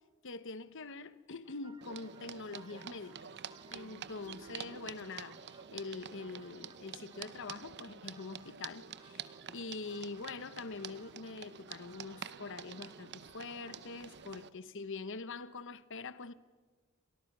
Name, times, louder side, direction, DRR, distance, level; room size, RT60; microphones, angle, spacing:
voice 1, 0.2-3.4 3.7-16.3, left 3 dB, 55° left, 1.0 m, -44 dB
sound 1, 1.4-14.3, right 3 dB, 20° right, 1.1 m, -62 dB
sound 2, 1.8-14.5, right 8 dB, 50° right, 0.8 m, -48 dB
30.0 x 26.5 x 6.1 m
head